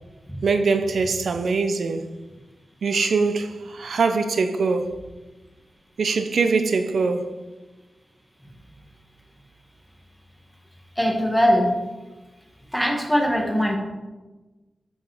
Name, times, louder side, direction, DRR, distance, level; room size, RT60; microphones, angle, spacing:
voice 1, 0.4-2.1 2.8-4.9 6.0-7.2, right 4 dB, 70° right, 0.6 m, -22 dB
voice 2, 11.0-11.7 12.7-13.8, equal, ahead, 1.8 m, -21 dB
13.5 x 5.6 x 5.0 m
wide cardioid pair, 155°, 0 cm